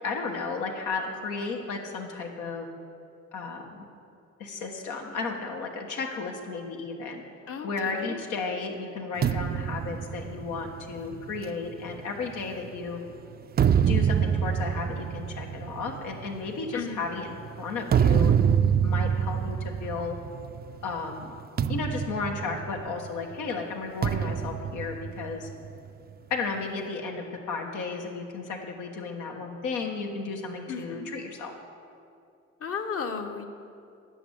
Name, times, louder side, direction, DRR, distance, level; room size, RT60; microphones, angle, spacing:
voice 1, 0.0-2.7 3.3-3.8 4.4-7.2 7.6-13.0 13.9-18.3 18.8-20.2 20.8-21.3 21.7-25.5 26.3-31.5, left 4 dB, 90° left, 2 dB, 1.5 m, -34 dB
voice 2, 7.5-8.2 16.7-17.0 30.7-31.1 32.6-33.5, left 6 dB, 50° left, 6 dB, 1.0 m, -34 dB
sound 1, 9.2-12.8 13.3-20.8 21.0-21.2 21.6-23.2 24.0-25.8, right 8 dB, 35° right, 0.4 m, -26 dB
11.0 x 6.1 x 8.9 m, 2.5 s
cardioid pair, 90°, 30 cm